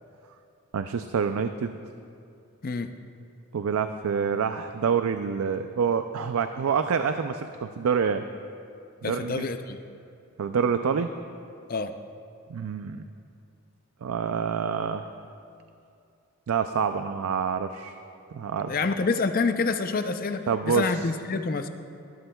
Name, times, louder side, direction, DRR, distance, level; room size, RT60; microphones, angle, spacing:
voice 1, 0.7-1.8 3.5-8.2 9.0-9.5 10.4-11.1 12.5-13.0 14.0-15.1 16.5-18.0 18.3-18.9 20.5-21.1, right 6 dB, 80° right, 8 dB, 0.4 m, -27 dB
voice 2, 9.0-9.8 11.7-11.9 18.7-21.7, left 4 dB, 40° left, 8 dB, 0.5 m, -27 dB
19.5 x 12.5 x 2.3 m, 2.5 s
head